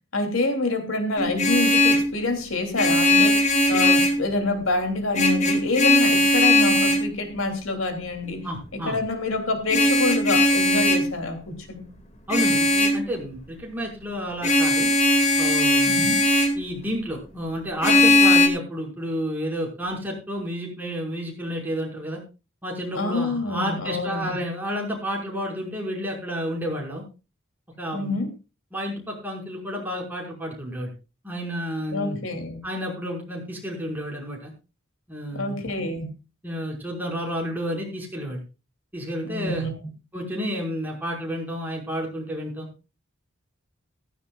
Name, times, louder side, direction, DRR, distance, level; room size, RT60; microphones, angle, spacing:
voice 1, 0.1-8.5 8.7-11.9 15.9-16.2 22.9-24.4 27.9-28.3 31.9-32.6 35.3-36.1 39.2-39.7, left 2 dB, 85° left, 6 dB, 3.1 m, -27 dB
Vehicle horn car horn honking, 1.2-2.1 2.8-4.2 5.1-7.1 9.7-11.1 12.3-13.0 14.4-16.6 17.8-18.5, left 1 dB, 35° left, 2.4 m, -19 dB
voice 2, 8.4-9.0 12.3-14.9 15.4-16.1 16.6-22.2 22.6-27.0 27.8-28.2 28.7-30.9 31.2-32.2 32.6-34.5 35.1-35.6 36.4-38.4 38.9-39.7 40.1-42.7, equal, 10° right, -1 dB, 5.6 m, -31 dB
15.5 x 15.0 x 2.5 m, 0.30 s
head